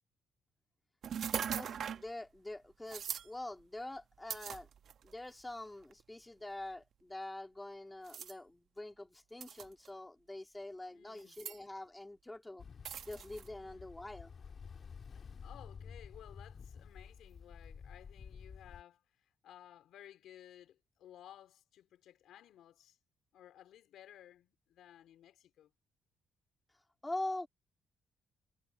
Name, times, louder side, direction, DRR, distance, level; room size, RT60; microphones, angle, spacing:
sound 1, 1.0-2.1 2.9-3.3 4.3-5.1 5.9-6.0 8.1-8.3 9.4-9.9 11.2-11.6 12.9-13.5, right 8 dB, 60° right, 1.1 m, -40 dB
voice 1, 1.5-4.7 5.0-12.6 13.0-14.3 27.0-27.5, left 1 dB, 10° left, 2.4 m, -45 dB
voice 2, 10.9-11.4 13.5-13.9 15.1-23.0 23.3-25.7, left 11 dB, 80° left, 3.9 m, -57 dB
Ocean, 12.6-18.8, left 6 dB, 45° left, 3.5 m, -51 dB
cardioid pair, 90°, 0 cm